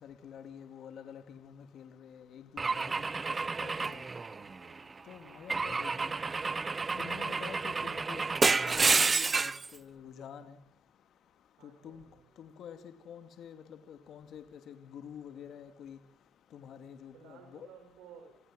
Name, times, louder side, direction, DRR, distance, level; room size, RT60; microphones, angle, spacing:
voice 1, 0.0-2.6 3.6-4.0 5.1-6.1 7.0-10.6 11.6-12.0 12.4-16.0 16.5-17.7, left 8 dB, 70° left, 8 dB, 2.6 m, -48 dB
Car / Engine / Glass, 2.6-4.8 5.5-9.7, right 4 dB, 30° right, 0.9 m, -30 dB
voice 2, 4.2-4.9 11.6-12.3 17.1-18.4, right 7 dB, 90° right, 2 dB, 5.5 m, -56 dB
28.5 x 16.5 x 7.7 m, 0.70 s
cardioid pair, 90°, 0 cm